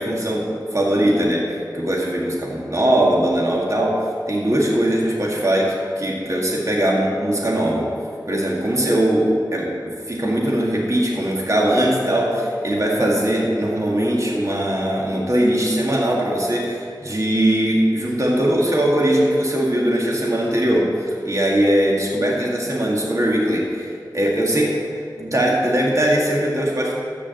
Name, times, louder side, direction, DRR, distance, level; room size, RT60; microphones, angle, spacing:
voice 1, 0.0-7.9 8.3-26.9, right 1 dB, 45° right, -3 dB, 1.9 m, -20 dB
14.0 x 5.1 x 7.7 m, 2.4 s
wide cardioid pair, 45°, 8 cm